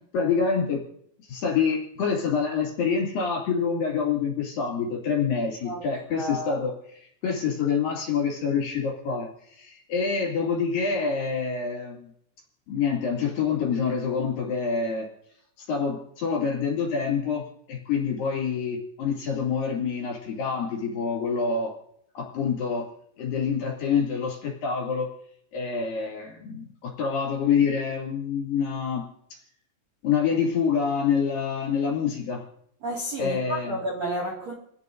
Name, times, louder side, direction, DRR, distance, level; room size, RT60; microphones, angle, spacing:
voice 1, 0.1-0.8 1.3-12.1 12.7-15.1 15.6-17.4 17.7-21.7 22.1-22.9 23.2-25.1 25.5-29.4 30.0-32.4 33.2-33.8, left 6 dB, 50° left, -2 dB, 3.8 m, -26 dB
voice 2, 6.1-6.6 32.8-34.5, right 1 dB, 50° right, -4 dB, 2.2 m, -31 dB
30.0 x 10.5 x 2.6 m, 0.72 s
omnidirectional pair, 5.9 m